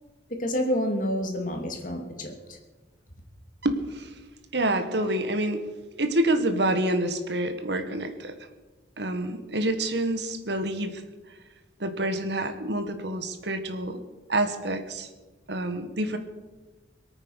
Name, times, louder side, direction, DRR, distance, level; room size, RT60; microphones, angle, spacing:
voice 1, 0.3-2.6, equal, 45° left, 3 dB, 2.6 m, -29 dB
voice 2, 3.6-4.1 4.5-5.6 6.0-8.3 9.0-11.0 11.8-14.0 14.3-15.1 15.5-16.2, right 1 dB, 70° right, 8 dB, 1.7 m, -27 dB
23.0 x 9.0 x 6.4 m, 1.2 s
head